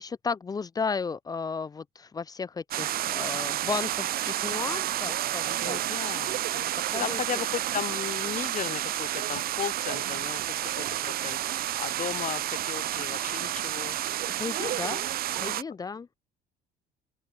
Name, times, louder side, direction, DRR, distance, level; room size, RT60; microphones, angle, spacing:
voice 1, 0.0-5.8 6.9-7.4 14.4-15.0 15.4-16.1, left 5 dB, 20° left, 0.5 m, -34 dB
sound 1, 2.7-15.6, right 13 dB, 60° right, 1.1 m, -30 dB
voice 2, 5.6-6.7 7.0-11.4 11.8-14.0 15.4-15.6, left 9 dB, 50° left, 1.6 m, -36 dB
open air
cardioid pair, 110°, 17 cm